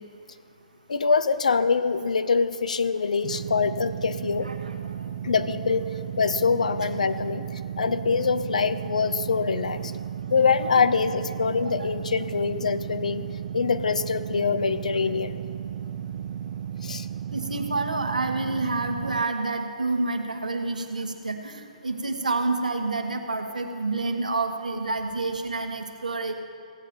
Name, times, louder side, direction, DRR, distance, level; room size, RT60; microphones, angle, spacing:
voice 1, 0.9-4.5 5.2-5.9 6.2-9.9 10.3-13.2 13.5-15.4 16.8-17.1, left 5 dB, 70° left, 13 dB, 0.6 m, -24 dB
sound 1, 3.2-19.2, right 9 dB, 50° right, 0.4 m, -34 dB
voice 2, 4.4-4.8 11.5-11.9 17.3-26.3, right 3 dB, 80° right, 5 dB, 1.2 m, -28 dB
16.0 x 9.2 x 4.3 m, 2.4 s
figure-of-eight pair, 125°, 4 cm